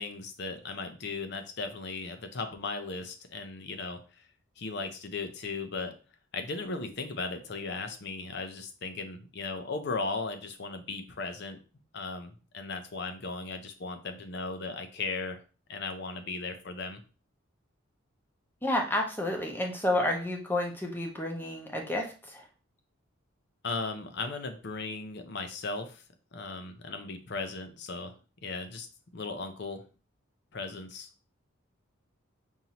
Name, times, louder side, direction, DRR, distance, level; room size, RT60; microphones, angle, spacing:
voice 1, 0.0-4.3 4.6-5.9 6.3-11.6 11.9-15.4 15.7-17.0 23.6-26.0 26.3-28.1 28.4-28.9 29.1-29.9 30.5-31.1, left 3 dB, 55° left, 7 dB, 0.6 m, -37 dB
voice 2, 18.6-22.5, left 1 dB, 10° left, 1 dB, 0.7 m, -30 dB
5.5 x 2.6 x 2.9 m, 0.35 s
head